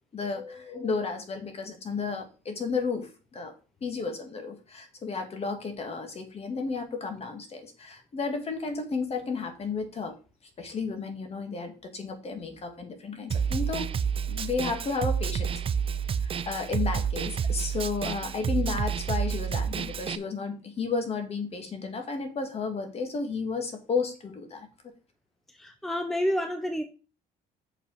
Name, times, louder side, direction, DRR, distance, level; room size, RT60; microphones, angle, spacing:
voice 1, 0.1-3.5 3.8-10.1 10.6-13.9 14.3-15.5 16.2-24.7, left 4 dB, 35° left, 2.2 m, -33 dB
Snare drum, 13.3-20.2, right 7 dB, 35° right, 0.5 m, -29 dB
voice 2, 25.5-26.8, equal, ahead, 0.8 m, -29 dB
6.6 x 5.5 x 5.6 m
cardioid pair, 110°, 17 cm